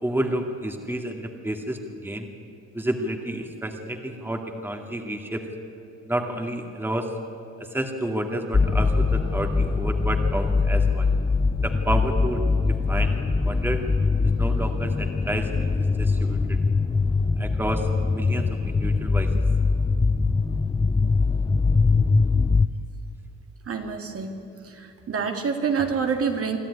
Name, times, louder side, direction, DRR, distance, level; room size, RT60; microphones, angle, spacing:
voice 1, 0.0-2.3 2.7-5.5 6.0-7.1 7.6-11.1 11.6-12.4 12.9-13.2 13.4-13.8 14.4-15.5 16.0-16.6 17.4-19.3, right 1 dB, 5° right, 3 dB, 2.3 m, -30 dB
sound 1, 8.5-22.7, left 4 dB, 15° left, 0.5 m, -22 dB
voice 2, 23.7-24.4 24.6-26.6, right 6 dB, 50° right, 3 dB, 2.3 m, -27 dB
25.0 x 12.5 x 9.8 m, 2.8 s
cardioid pair, 90°, 30 cm